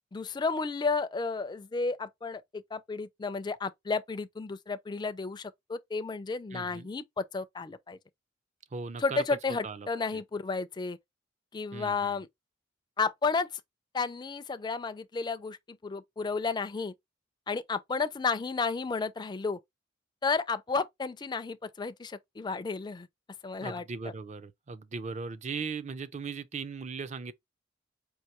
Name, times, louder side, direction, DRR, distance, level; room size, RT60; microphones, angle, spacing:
voice 1, 0.1-8.0 9.0-11.0 11.5-12.3 13.0-13.6 13.9-16.9 17.5-19.6 20.2-23.1 23.4-23.8, left 4 dB, 25° left, 0.4 m, -32 dB
voice 2, 6.5-6.9 8.7-10.2 11.7-12.2 23.6-27.3, right 4 dB, 40° right, 0.5 m, -38 dB
4.6 x 2.6 x 2.9 m
head